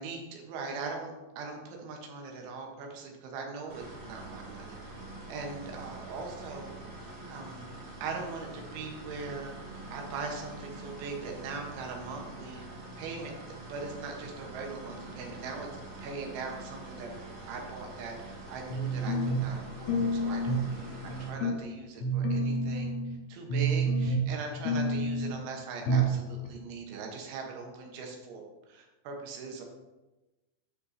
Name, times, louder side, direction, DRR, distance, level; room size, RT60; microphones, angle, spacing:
voice 1, 0.0-4.8 5.3-6.7 7.3-7.7 8.0-9.5 9.9-12.6 13.0-15.7 16.0-17.1 17.5-22.9 23.3-29.6, right 4 dB, 85° right, 2 dB, 3.7 m, -40 dB
sound 1, 3.7-21.3, right 2 dB, 40° right, 2.9 m, -45 dB
sound 2, 18.7-19.5 19.9-20.7 21.1-21.6 22.0-23.2 23.5-24.4 24.6-25.4 25.9-26.2 26.4-26.5, right 2 dB, 85° left, 4.1 m, -28 dB
9.6 x 5.4 x 4.1 m, 1.1 s
omnidirectional pair, 5.3 m